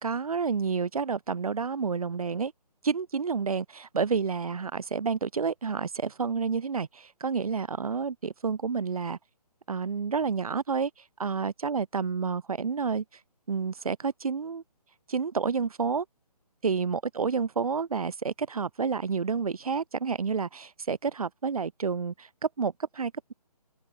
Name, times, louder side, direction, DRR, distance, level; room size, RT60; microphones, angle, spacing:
voice 1, 0.0-2.5 2.8-9.2 9.7-10.9 11.2-13.0 13.5-14.6 15.1-16.1 16.6-22.3 22.6-23.3, right 5 dB, 60° right, 1.7 m, -29 dB
hypercardioid pair, 170°, 21 cm